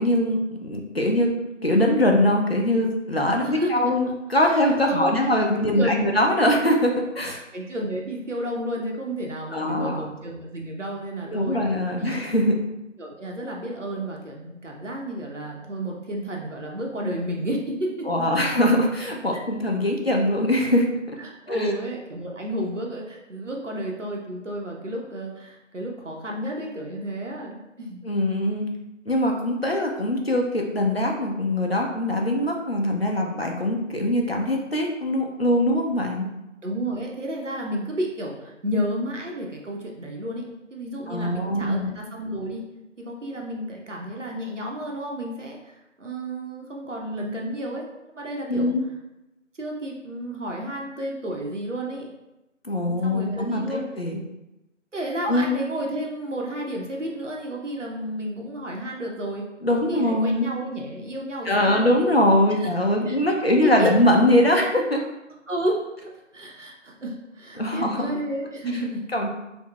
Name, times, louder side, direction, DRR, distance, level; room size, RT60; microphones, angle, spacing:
voice 1, 0.0-1.3 1.6-7.4 9.5-10.1 11.3-12.5 18.1-21.2 21.5-21.7 28.0-28.7 29.1-36.3 41.1-41.9 48.5-48.8 52.6-54.2 55.2-55.6 59.6-60.5 61.5-65.0 67.6-68.1 69.1-69.3, left 1 dB, 50° left, 0 dB, 0.4 m, -22 dB
voice 2, 3.4-3.7 4.4-5.1 5.7-6.1 7.5-11.6 11.9-12.6 13.0-18.1 19.3-19.4 21.2-28.0 36.6-40.4 40.7-42.6 43.0-47.9 48.1-48.7 49.6-52.1 52.8-53.8 54.9-61.9 62.5-62.7 63.1-63.2 63.4-63.9 65.5-69.0, right 1 dB, 70° right, -1 dB, 0.7 m, -31 dB
3.7 x 2.1 x 2.2 m, 0.95 s
figure-of-eight pair, 180°, 39 cm